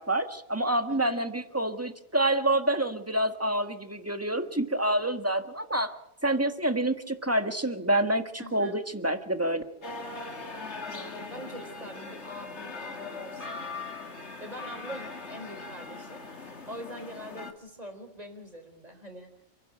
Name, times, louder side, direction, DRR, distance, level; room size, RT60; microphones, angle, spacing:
voice 1, 0.0-5.9 6.2-9.6, right 1 dB, 10° right, 8 dB, 1.5 m, -27 dB
voice 2, 0.9-1.2 8.4-8.8 10.8-14.0 14.4-19.3, right 1 dB, 35° right, 5 dB, 4.4 m, -44 dB
sound 1, 9.8-17.5, left 3 dB, 70° left, 2.4 m, -40 dB
28.5 x 11.0 x 9.0 m, 0.88 s
omnidirectional pair, 1.2 m